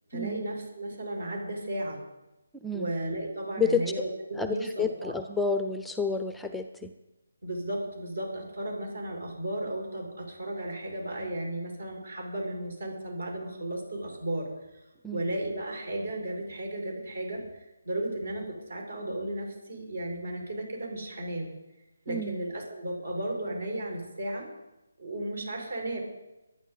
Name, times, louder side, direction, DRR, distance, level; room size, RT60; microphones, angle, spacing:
voice 1, 0.1-2.0 2.7-4.1 4.5-5.1 7.4-14.8 15.1-21.5 22.1-24.5 25.0-26.0, right 1 dB, 65° right, 1 dB, 5.5 m, -34 dB
voice 2, 2.5-2.9 3.6-3.8 4.3-6.9 15.0-15.3 22.1-22.4, left 4 dB, ahead, 8 dB, 0.5 m, -30 dB
23.5 x 9.7 x 4.1 m, 1.0 s
figure-of-eight pair, 150°, 0 cm